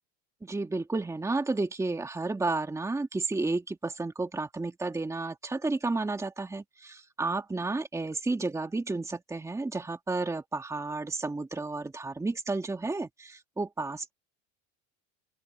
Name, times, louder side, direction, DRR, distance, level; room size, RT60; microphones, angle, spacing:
voice 1, 0.4-14.1, right 3 dB, 10° right, 2.1 m, -32 dB
open air
supercardioid pair, 130°, 32 cm